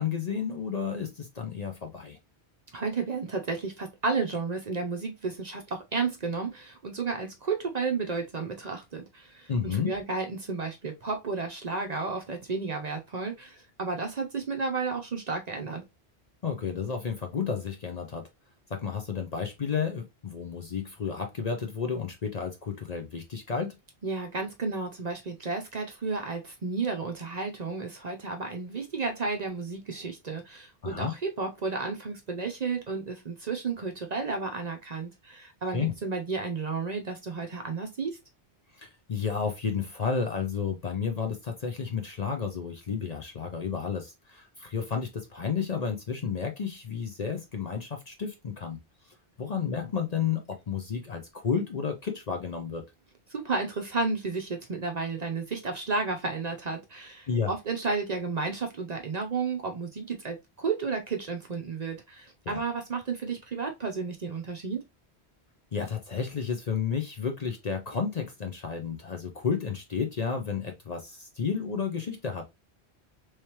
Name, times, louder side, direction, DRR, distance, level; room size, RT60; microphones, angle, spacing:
voice 1, 0.0-2.2 9.5-9.9 16.4-18.2 18.7-23.8 30.8-31.1 35.7-35.9 38.7-48.8 49.0-52.8 57.3-57.5 62.5-62.6 65.7-72.4, left 6 dB, 45° left, 0.6 m, -32 dB
voice 2, 2.7-15.8 24.0-38.2 53.3-64.8, right 4 dB, 45° right, 0.6 m, -32 dB
3.3 x 3.2 x 2.8 m
omnidirectional pair, 1.1 m